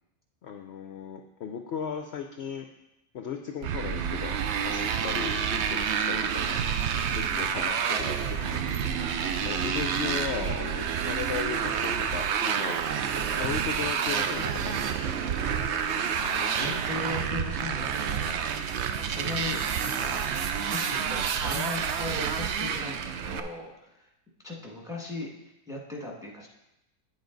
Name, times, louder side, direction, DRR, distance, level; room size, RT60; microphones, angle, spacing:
voice 1, 0.4-2.7 3.1-6.6 7.1-8.7 9.0-12.8 13.4-15.1, left 7 dB, 60° left, 5 dB, 0.7 m, -37 dB
Motorcycle, 3.6-23.4, right 7 dB, 65° right, 0.7 m, -29 dB
voice 2, 7.3-7.7 9.3-9.6 16.1-18.8 19.1-20.2 20.7-24.1 24.4-26.5, left 2 dB, ahead, -2 dB, 1.6 m, -38 dB
9.4 x 7.2 x 3.9 m, 0.89 s
omnidirectional pair, 1.6 m